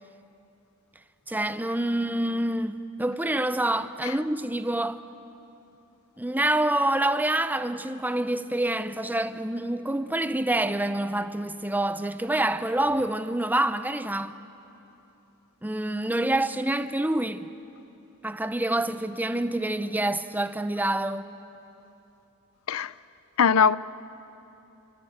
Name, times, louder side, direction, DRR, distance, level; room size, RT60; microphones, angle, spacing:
voice 1, 1.3-5.0 6.2-14.3 15.6-17.5 18.2-21.3, right 1 dB, 10° right, 0.8 m, -27 dB
voice 2, 23.4-23.8, left 6 dB, 70° left, 0.6 m, -20 dB
28.5 x 24.0 x 8.1 m
head